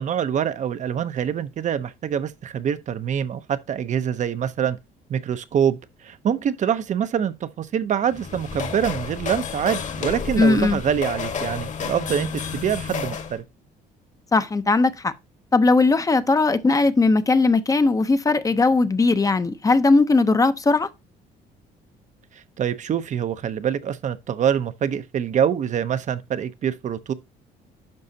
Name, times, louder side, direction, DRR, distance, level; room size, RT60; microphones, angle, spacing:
voice 1, 0.0-4.8 5.1-12.3 12.5-13.4 22.3-27.1, right 8 dB, 45° right, 0.7 m, -25 dB
sound 1, 8.0-13.4, left 6 dB, 45° left, 1.5 m, -31 dB
voice 2, 10.4-10.8 14.3-15.1 15.5-20.9, left 3 dB, 20° left, 0.7 m, -18 dB
10.5 x 5.5 x 2.8 m
cardioid pair, 110°, 17 cm